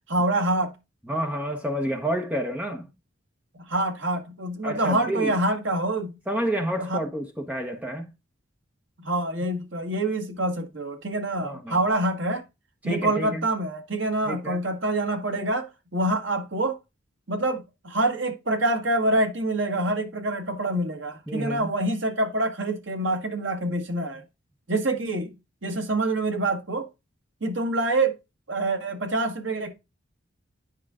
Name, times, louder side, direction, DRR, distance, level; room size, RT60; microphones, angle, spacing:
voice 1, 0.1-0.7 3.6-6.1 6.8-7.0 9.0-12.4 12.8-15.6 15.9-16.8 17.3-24.2 24.7-25.3 25.6-26.9 27.4-28.2 28.5-29.7, right 2 dB, 70° right, 1.5 m, -26 dB
voice 2, 1.1-2.9 4.6-5.3 6.3-8.1 11.4-11.8 12.8-13.5 14.2-14.6 21.3-21.7, right 1 dB, 10° right, 1.1 m, -29 dB
9.9 x 4.9 x 2.4 m
head